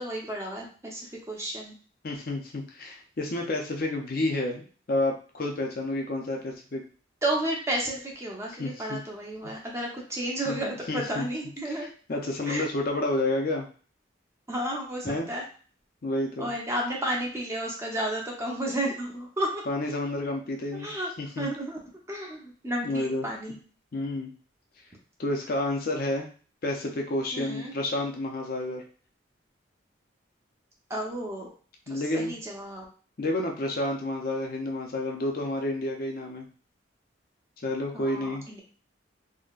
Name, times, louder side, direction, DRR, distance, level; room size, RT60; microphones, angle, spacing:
voice 1, 0.0-1.8 7.2-11.9 12.5-12.7 14.5-15.4 16.4-19.6 20.7-21.1 21.4-21.8 22.1-23.6 27.3-27.7 30.9-31.5 31.9-32.8 37.9-38.6, right 1 dB, 15° right, -2 dB, 0.6 m, -32 dB
voice 2, 2.0-6.8 8.6-9.0 10.5-11.3 11.7-11.8 12.1-13.7 15.0-15.3 16.0-16.5 19.7-20.9 21.2-21.5 22.8-23.3 23.9-24.3 25.2-26.3 26.6-28.8 31.9-32.3 33.2-36.5 37.6-38.4, left 2 dB, 50° left, 2 dB, 0.5 m, -30 dB
3.8 x 2.1 x 2.4 m, 0.40 s
head